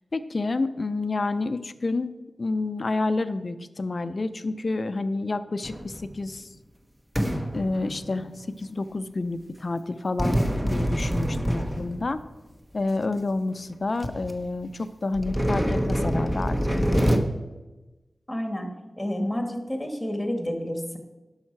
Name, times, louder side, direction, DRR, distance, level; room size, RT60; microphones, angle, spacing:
voice 1, 0.1-2.1 2.4-6.5 7.5-12.2 12.7-17.1, left 3 dB, 50° left, 12 dB, 0.5 m, -29 dB
sound 1, 5.6-6.3 7.1-8.4 10.2-12.3 13.1-13.2 13.7-13.8 14.0-14.3 15.1-17.2, equal, 5° right, 0.9 m, -26 dB
voice 2, 18.3-18.7 19.0-21.0, equal, 10° left, 4 dB, 1.7 m, -29 dB
12.0 x 5.7 x 4.6 m, 1.1 s
wide cardioid pair, 65°, 0 cm